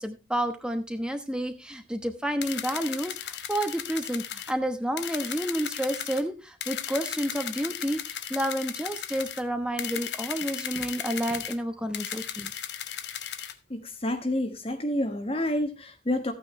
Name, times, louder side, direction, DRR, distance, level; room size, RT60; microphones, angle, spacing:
voice 1, 0.0-12.5, right 1 dB, 5° right, 7 dB, 1.0 m, -30 dB
sound 1, 2.4-4.5 5.0-6.2 6.6-9.4 9.8-11.6 11.9-13.5, left 9 dB, 80° left, 1.0 m, -36 dB
voice 2, 13.7-16.3, left 1 dB, 35° left, 6 dB, 1.2 m, -29 dB
14.5 x 9.0 x 3.2 m, 0.26 s
head